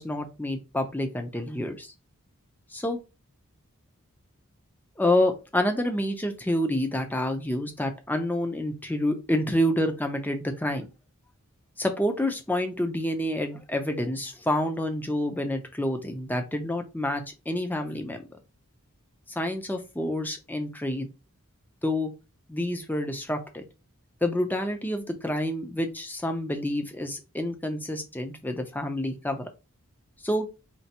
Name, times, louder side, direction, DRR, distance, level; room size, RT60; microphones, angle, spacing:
voice 1, 0.0-1.9 2.7-3.0 5.0-10.9 11.8-18.2 19.3-21.1 21.8-22.1 22.5-23.6 24.2-29.5 30.2-30.5, left 1 dB, 10° left, 6 dB, 0.6 m, -28 dB
4.5 x 3.1 x 2.9 m, 0.28 s
head